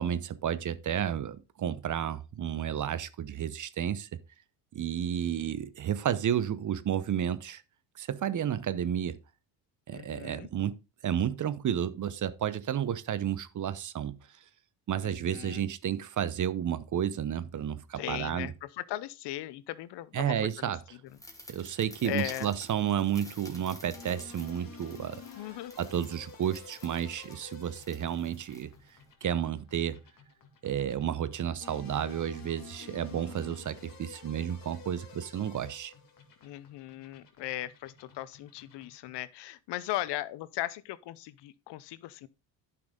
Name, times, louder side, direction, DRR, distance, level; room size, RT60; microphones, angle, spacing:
voice 1, 0.0-4.2 4.7-7.6 8.0-9.2 9.9-14.2 14.9-18.5 20.1-20.8 21.5-25.2 25.8-28.7 29.2-30.0 30.6-35.9, right 9 dB, 40° right, 0.8 m, -31 dB
voice 2, 9.9-10.5 15.0-15.7 18.0-20.4 22.0-22.5 25.4-25.7 36.4-42.3, left 15 dB, 65° left, 0.7 m, -38 dB
sound 1, 21.1-29.1, left 1 dB, 5° left, 2.3 m, -52 dB
sound 2, 23.9-39.3, left 6 dB, 45° left, 2.5 m, -51 dB
10.5 x 5.8 x 3.8 m
supercardioid pair, 65°, 45 cm